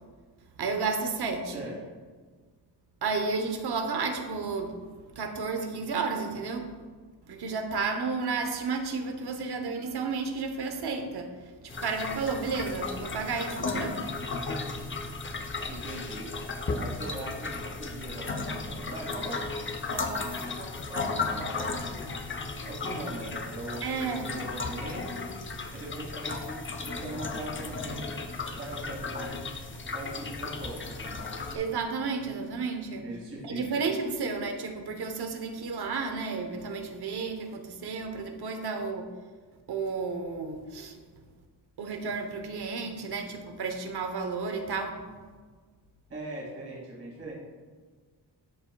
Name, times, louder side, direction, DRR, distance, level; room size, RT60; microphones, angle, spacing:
voice 1, 0.6-1.5 3.0-4.7 5.1-6.7 7.3-14.0 23.8-24.3 31.5-33.0 33.4-39.1 39.7-40.9 41.8-45.0, right 4 dB, 65° right, 6 dB, 1.0 m, -32 dB
sound 1, 11.7-31.6, left 3 dB, 30° left, 0.6 m, -35 dB
voice 2, 15.7-16.3 16.8-19.4 19.8-22.1 22.6-23.8 24.1-25.3 25.7-26.6 26.8-29.3 29.9-31.2 33.0-33.8 46.1-47.3, right 1 dB, 35° right, -5 dB, 2.3 m, -40 dB
13.5 x 5.0 x 2.3 m, 1.5 s
wide cardioid pair, 130°, 42 cm